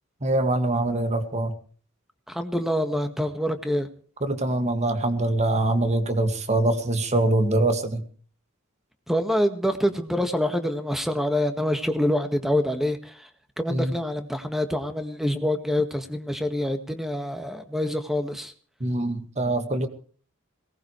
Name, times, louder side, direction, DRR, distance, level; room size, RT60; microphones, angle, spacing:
voice 1, 0.2-1.5 4.2-8.0 13.7-13.9 18.8-19.9, right 2 dB, 30° right, 8 dB, 2.1 m, -24 dB
voice 2, 2.3-3.9 9.1-13.3 13.6-18.5, left 1 dB, ahead, 8 dB, 1.7 m, -26 dB
22.0 x 18.5 x 3.2 m, 0.41 s
head